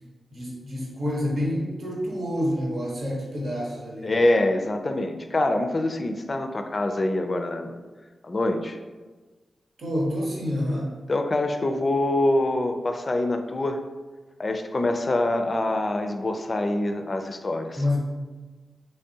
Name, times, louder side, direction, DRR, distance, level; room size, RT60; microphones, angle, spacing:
voice 1, 0.3-4.1 9.8-10.9 17.7-18.0, left 1 dB, 70° right, -3 dB, 1.0 m, -28 dB
voice 2, 4.0-7.8 8.2-8.8 11.1-13.8 14.4-17.8, left 1 dB, 45° left, 6 dB, 0.4 m, -25 dB
3.4 x 3.3 x 2.8 m, 1.3 s
cardioid pair, 45°, 0 cm